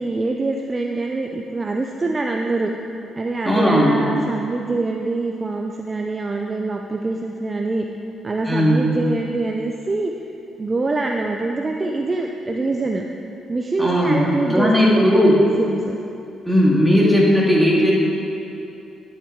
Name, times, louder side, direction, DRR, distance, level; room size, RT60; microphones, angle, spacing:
voice 1, 0.0-2.7 3.2-7.9 8.2-10.1 10.6-13.0 13.5-16.0, right 3 dB, 25° right, 2 dB, 0.6 m, -24 dB
voice 2, 3.4-4.0 8.5-8.9 13.8-15.4 16.5-17.9, equal, ahead, -5 dB, 2.4 m, -16 dB
10.5 x 7.3 x 4.6 m, 2.8 s
cardioid pair, 90°, 0 cm